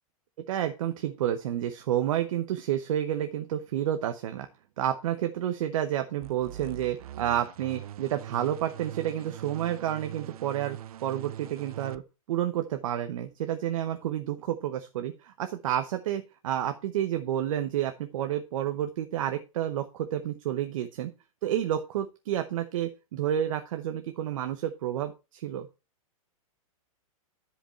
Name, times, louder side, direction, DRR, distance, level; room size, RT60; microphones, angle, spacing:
voice 1, 0.5-4.5 4.8-12.0 12.3-21.1 21.4-25.7, right 11 dB, 65° right, 7 dB, 0.9 m, -30 dB
sound 1, 6.2-12.0, right 11 dB, 80° right, 0.4 m, -42 dB
10.5 x 5.1 x 4.4 m, 0.29 s
hypercardioid pair, 135°, 18 cm